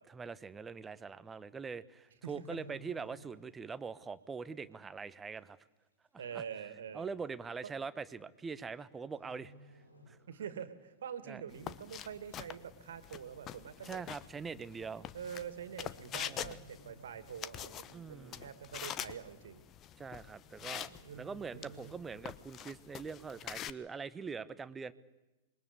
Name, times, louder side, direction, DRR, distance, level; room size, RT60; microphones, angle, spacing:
voice 1, 0.0-5.6 6.1-6.4 6.9-9.5 10.1-10.2 11.3-11.4 13.8-15.1 16.3-16.6 17.9-18.4 20.0-24.9, right 5 dB, 15° right, 14 dB, 1.1 m, -43 dB
sound 1, 2.0-3.7 4.0-4.3 4.8-4.9 5.8-5.9 6.1-6.2 7.1-7.3 8.4-8.8 9.1-10.6 11.0-11.2 11.7-12.2 12.6-12.7 12.9-13.0 13.4-13.5 14.5-14.6 14.8-15.1 15.4-15.5 15.9-17.6 17.9-18.0, equal, 85° left, 6.4 m, -57 dB
voice 2, 6.2-7.1 10.3-14.0 15.1-19.6 20.6-22.0, right 8 dB, 65° right, 12 dB, 2.4 m, -46 dB
sound 2, 11.5-23.7, left 10 dB, 30° left, 1.0 m, -46 dB
27.0 x 22.5 x 8.3 m, 1.0 s
figure-of-eight pair, 95°, 0 cm